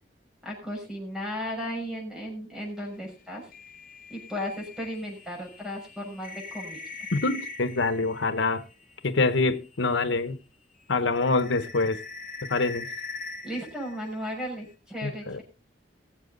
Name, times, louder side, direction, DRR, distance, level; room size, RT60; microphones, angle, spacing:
voice 1, 0.4-3.5 4.1-6.8 13.4-15.4, equal, 5° right, 6.4 m, -35 dB
sound 1, 3.5-10.4 10.7-14.7, left 3 dB, 50° left, 1.5 m, -43 dB
voice 2, 7.1-8.6 9.0-10.4 10.9-12.0 12.5-12.9 15.0-15.4, left 3 dB, 85° left, 1.0 m, -25 dB
21.0 x 7.6 x 3.9 m
head